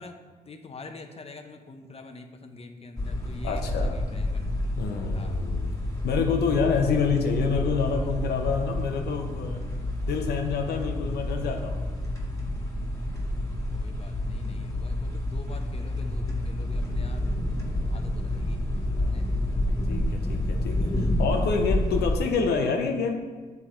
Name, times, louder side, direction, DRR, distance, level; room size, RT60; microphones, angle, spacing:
voice 1, 0.0-4.5 5.1-5.4 13.7-17.3 17.9-18.6 19.0-19.3, left 3 dB, 35° left, 6 dB, 0.8 m, -45 dB
sound 1, 3.0-22.2, left 1 dB, 20° left, 1.9 m, -29 dB
voice 2, 3.4-4.0 4.8-5.7 6.0-9.6 10.0-11.8 19.0-19.4 19.9-23.2, left 5 dB, 75° left, 3 dB, 0.8 m, -27 dB
7.2 x 3.5 x 4.4 m, 1.4 s
supercardioid pair, 55°, 17 cm